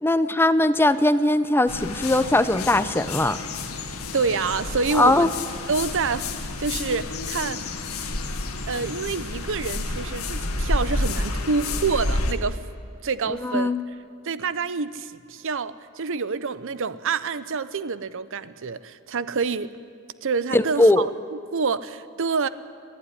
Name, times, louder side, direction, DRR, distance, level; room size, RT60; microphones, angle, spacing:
voice 1, 0.0-3.4 4.9-5.3 13.3-13.8 20.5-21.0, left 1 dB, 10° left, 13 dB, 0.6 m, -20 dB
sound 1, 1.7-12.3, left 2 dB, 85° left, 1.8 m, -30 dB
voice 2, 4.1-5.3 5.7-7.7 8.7-12.7 13.0-13.7 14.2-19.7 20.2-22.5, right 4 dB, 60° right, 15 dB, 0.7 m, -27 dB
29.5 x 11.5 x 9.8 m, 2.3 s
head